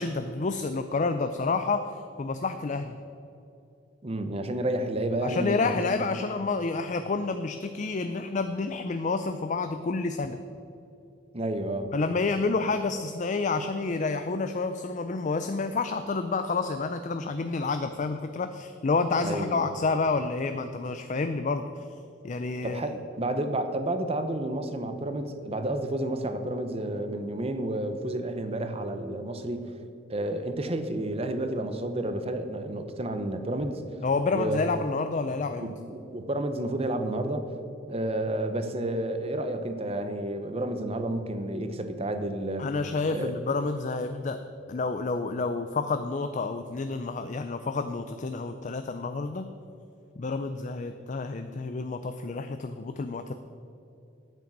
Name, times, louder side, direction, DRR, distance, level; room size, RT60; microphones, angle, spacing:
voice 1, 0.0-3.0 5.2-10.4 11.9-21.9 22.2-23.0 34.0-35.7 42.6-44.4 44.7-49.5 50.2-53.3, left 3 dB, 40° left, 9 dB, 0.4 m, -29 dB
voice 2, 4.0-6.1 11.3-11.9 19.2-19.7 22.6-29.7 30.1-33.8 34.3-34.8 35.6-37.5 37.9-42.7 43.1-43.3, right 1 dB, 35° right, 8 dB, 0.9 m, -31 dB
9.1 x 8.6 x 7.3 m, 2.7 s
head